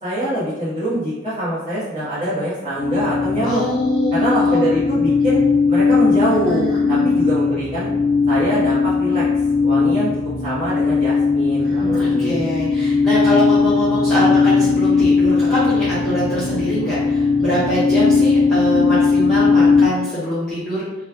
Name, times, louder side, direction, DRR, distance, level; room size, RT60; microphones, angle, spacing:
voice 1, 0.0-3.6 4.1-5.4 5.7-7.9 8.3-9.2 9.6-10.1 10.4-12.5, right 1 dB, 30° right, -13 dB, 1.2 m, -24 dB
sound 1, 2.8-19.9, left 4 dB, 45° left, 0.7 m, -18 dB
voice 2, 3.4-4.6 6.5-7.1 11.6-20.9, equal, ahead, -12 dB, 1.1 m, -24 dB
3.1 x 2.3 x 3.5 m, 1.0 s
head